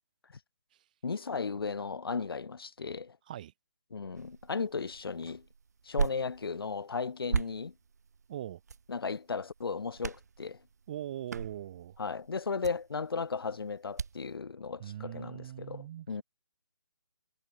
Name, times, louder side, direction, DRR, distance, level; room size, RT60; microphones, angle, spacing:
voice 1, 1.0-3.2 3.9-5.4 5.8-7.7 8.9-10.6 12.0-16.2, left 5 dB, 70° left, 1.0 m, -35 dB
sound 1, 4.1-14.4, right 5 dB, 45° right, 1.0 m, -39 dB
voice 2, 8.3-8.6 10.9-12.0 14.8-16.2, right 12 dB, 20° right, 2.8 m, -41 dB
hypercardioid pair, 175°, 13 cm